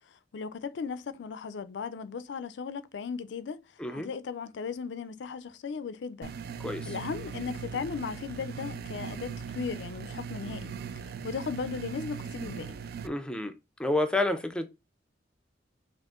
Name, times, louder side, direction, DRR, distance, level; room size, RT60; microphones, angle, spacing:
voice 1, 0.1-3.6 3.9-6.3 6.9-10.7 11.0-12.8, left 5 dB, 70° left, 0.4 m, -37 dB
sound 1, 6.2-13.1, right 6 dB, 55° right, 0.3 m, -39 dB
voice 2, 6.6-6.9 13.0-13.5 13.8-14.7, left 2 dB, 5° left, 0.4 m, -29 dB
6.2 x 2.5 x 2.4 m
head